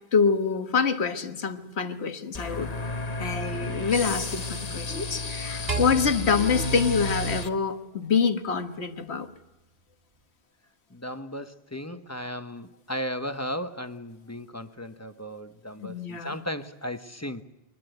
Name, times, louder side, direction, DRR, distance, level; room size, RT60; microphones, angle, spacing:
voice 1, 0.1-2.7 3.2-9.3 15.8-16.4, left 5 dB, 80° left, 8 dB, 1.7 m, -26 dB
sound 1, 2.3-7.5, left 2 dB, 40° left, 1.3 m, -32 dB
voice 2, 3.5-3.8 5.7-5.8 10.9-17.4, equal, 15° left, 9 dB, 1.0 m, -36 dB
sound 2, 5.7-8.1, right 5 dB, 70° right, 2.1 m, -35 dB
23.5 x 21.0 x 8.0 m, 0.98 s
omnidirectional pair, 1.1 m